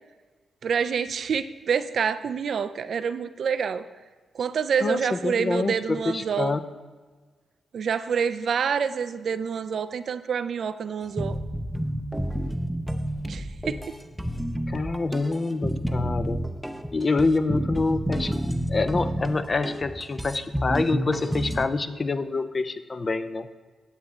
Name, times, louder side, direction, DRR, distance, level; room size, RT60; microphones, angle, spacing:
voice 1, 0.6-3.8 4.3-6.6 7.7-11.4 13.3-13.8, right 6 dB, 65° right, 12 dB, 0.3 m, -27 dB
voice 2, 4.8-6.6 14.7-16.4 16.9-18.3 18.7-23.5, left 3 dB, 45° left, 11 dB, 0.5 m, -26 dB
sound 1, 11.2-21.6, equal, 5° right, 0.6 m, -30 dB
9.7 x 7.1 x 3.1 m, 1.4 s
supercardioid pair, 40°, 0 cm